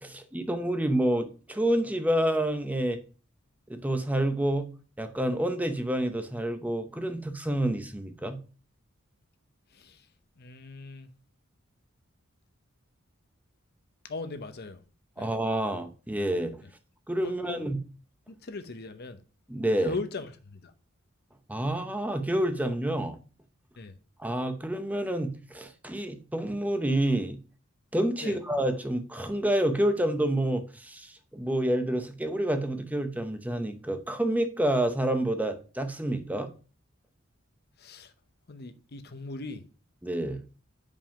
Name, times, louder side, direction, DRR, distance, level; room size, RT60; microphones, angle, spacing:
voice 1, 0.0-3.0 3.7-4.7 5.0-8.4 15.2-16.6 17.1-17.8 19.5-19.9 21.5-23.2 24.2-27.4 27.9-36.5 40.0-40.5, right 1 dB, 10° right, 0.7 m, -28 dB
voice 2, 9.7-10.1 10.4-11.1 14.0-14.8 15.2-15.3 16.6-16.7 17.2-17.7 18.3-19.2 19.8-20.7 23.8-24.0 28.2-28.4 37.8-38.1 38.5-39.6, left 3 dB, 50° left, 0.8 m, -39 dB
5.5 x 5.2 x 5.6 m
head